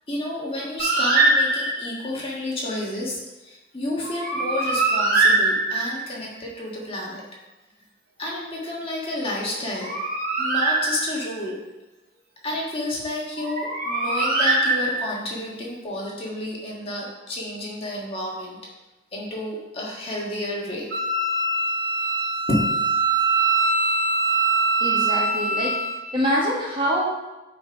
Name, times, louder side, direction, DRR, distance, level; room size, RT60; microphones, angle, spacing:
voice 1, 0.1-7.2 8.2-9.9 10.4-11.6 12.4-18.6 19.1-20.9 22.5-22.6, left 1 dB, 30° left, -3 dB, 1.5 m, -30 dB
Bird, 0.8-2.0 4.0-6.1 9.5-11.4 13.4-15.3, right 2 dB, 50° right, 2.0 m, -22 dB
Wind instrument woodwind instrument, 20.9-26.1, right 3 dB, 75° right, 1.1 m, -23 dB
voice 2, 24.8-25.8 26.1-27.2, equal, 25° right, -3 dB, 1.3 m, -24 dB
8.4 x 3.9 x 4.5 m, 1.1 s
head